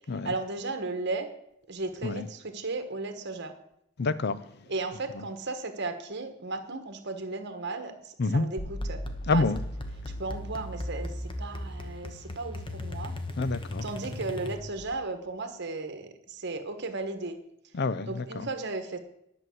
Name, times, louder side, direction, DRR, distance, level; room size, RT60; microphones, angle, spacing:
voice 1, 0.2-1.3 1.7-3.5 4.7-9.5 10.2-13.2 13.8-17.4 18.1-19.0, right 3 dB, 55° right, 1.4 m, -35 dB
voice 2, 4.0-4.5 8.2-8.5 9.3-9.6 13.4-13.8 17.7-18.5, left 3 dB, 55° left, 0.5 m, -27 dB
sound 1, 8.6-14.9, left 1 dB, 25° left, 1.1 m, -37 dB
11.0 x 6.1 x 7.8 m
head